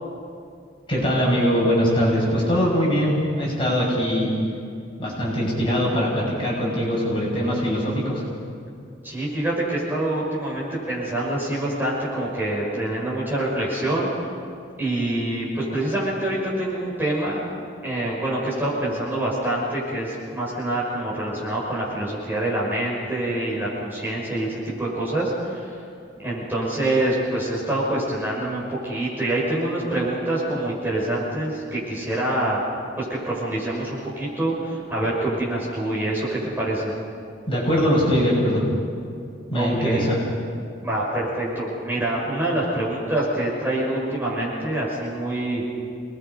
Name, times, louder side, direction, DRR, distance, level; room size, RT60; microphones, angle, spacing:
voice 1, 0.9-4.3 5.0-8.2 37.5-38.6 39.5-40.2, equal, 25° left, -5 dB, 6.6 m, -22 dB
voice 2, 9.0-14.1 14.8-17.4 17.8-25.8 26.2-32.6 33.0-36.9 39.5-40.1 40.8-45.7, right 1 dB, 10° right, -6 dB, 6.1 m, -26 dB
29.5 x 20.5 x 5.5 m, 2.4 s
head